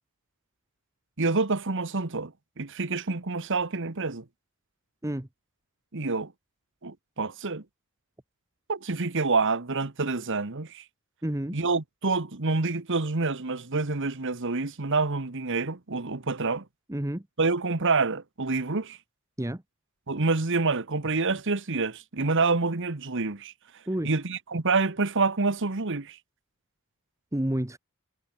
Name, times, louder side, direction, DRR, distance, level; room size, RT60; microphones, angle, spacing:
voice 1, 1.2-2.3 2.6-4.2 5.9-6.3 6.8-7.6 8.7-10.8 11.5-16.6 17.4-19.0 20.1-23.5 24.0-26.2, right 3 dB, 60° right, 1.4 m, -27 dB
voice 2, 11.2-11.6 16.9-17.2 19.4-19.6 23.9-24.1 27.3-27.8, right 1 dB, 15° right, 1.1 m, -29 dB
head